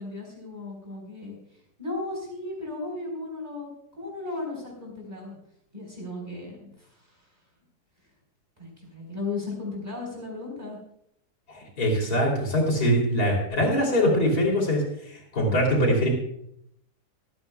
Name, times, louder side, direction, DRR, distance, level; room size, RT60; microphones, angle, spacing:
voice 1, 0.0-1.4 1.8-5.4 5.7-7.2 8.6-10.8, left 3 dB, 25° right, -1 dB, 4.4 m, -36 dB
voice 2, 11.5-14.8 15.1-16.1, equal, 65° left, -2 dB, 3.8 m, -23 dB
25.0 x 9.0 x 2.3 m, 0.73 s
omnidirectional pair, 1.7 m